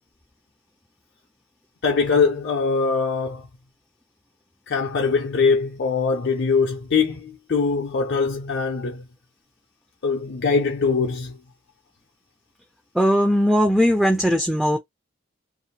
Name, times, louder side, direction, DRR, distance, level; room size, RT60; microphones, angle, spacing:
voice 1, 1.8-3.5 4.7-9.0 10.0-11.4, left 5 dB, 60° left, 0.5 m, -22 dB
voice 2, 12.9-14.8, equal, ahead, 0.4 m, -19 dB
2.5 x 2.1 x 2.8 m
head